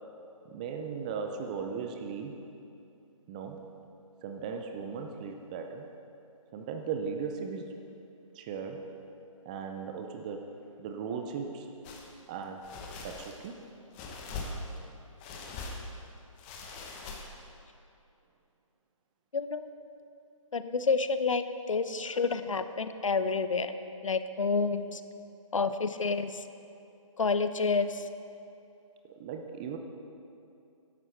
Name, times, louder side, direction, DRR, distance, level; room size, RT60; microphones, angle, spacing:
voice 1, 0.5-2.4 3.3-3.6 4.2-5.9 6.5-7.7 8.3-8.9 9.5-11.7 12.3-12.7 13.0-13.6 24.8-24.9 29.0-29.8, right 6 dB, 15° right, 4 dB, 0.4 m, -37 dB
sound 1, 11.8-12.1 12.6-13.5 13.9-14.8 15.2-15.9 16.4-17.5, left 3 dB, 20° left, 1.2 m, -41 dB
voice 2, 19.3-19.7 20.5-23.7 24.0-25.0 25.5-26.4 27.2-28.1, left 4 dB, 65° left, 11 dB, 0.7 m, -29 dB
14.0 x 11.0 x 4.4 m, 2.6 s
figure-of-eight pair, 145°, 18 cm